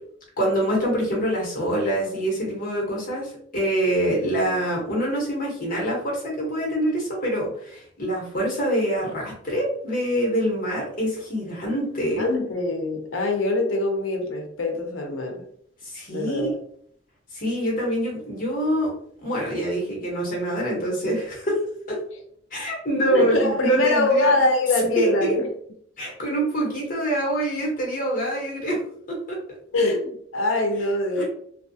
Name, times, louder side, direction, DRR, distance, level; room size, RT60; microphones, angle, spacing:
voice 1, 0.4-12.2 15.8-16.4 17.3-18.9 19.2-21.6 21.9-22.0 22.5-24.3 25.0-25.3 26.0-28.8 29.3-29.4 31.2-31.3, right 1 dB, 45° left, -3 dB, 1.1 m, -25 dB
voice 2, 12.2-15.4 16.1-16.5 23.1-25.5 29.7-31.2, left 2 dB, 90° left, 3 dB, 0.6 m, -23 dB
2.6 x 2.3 x 2.7 m, 0.64 s
head